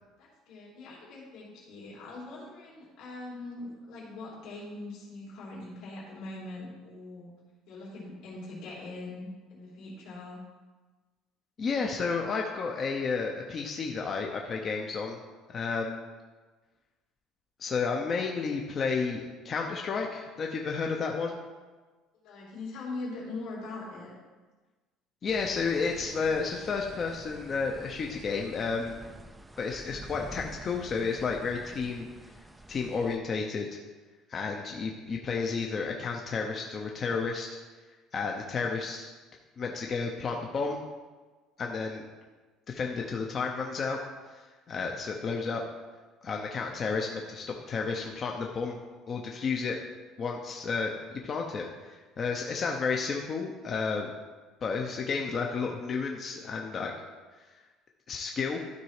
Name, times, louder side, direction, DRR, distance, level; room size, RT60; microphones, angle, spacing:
voice 1, 0.2-7.3 7.7-10.4 22.1-24.1, left 2 dB, 70° left, -6 dB, 2.7 m, -42 dB
voice 2, 11.6-15.2 15.5-16.0 17.6-21.4 25.2-29.0 29.6-32.3 32.7-33.8 34.3-37.6 38.1-39.1 39.6-40.8 41.6-42.1 42.7-45.6 46.2-48.8 49.1-49.8 50.2-54.1 54.6-56.9 58.1-58.6, left 5 dB, 30° left, 1 dB, 0.7 m, -32 dB
sound 1, 25.3-33.2, right 1 dB, 5° right, 0.4 m, -48 dB
12.0 x 4.1 x 4.9 m, 1.3 s
cardioid pair, 150°, 0 cm